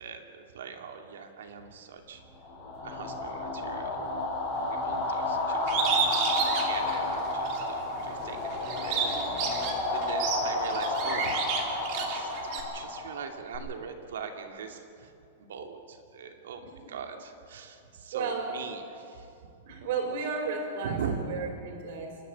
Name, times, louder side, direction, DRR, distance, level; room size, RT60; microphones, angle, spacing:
voice 1, 0.0-2.2 2.8-4.1 4.8-15.1 15.4-19.3 20.8-21.2, right 6 dB, 85° right, 4 dB, 2.6 m, -41 dB
sound 1, 2.4-13.6, left 2 dB, 35° left, 6.5 m, -31 dB
Bird, 5.7-7.7 8.1-12.6, right 6 dB, 35° right, 2.8 m, -31 dB
voice 2, 16.6-17.0 18.1-18.5 19.6-22.2, right 4 dB, 50° right, 3 dB, 4.9 m, -33 dB
27.5 x 12.0 x 8.6 m, 2.6 s
supercardioid pair, 170°, 0 cm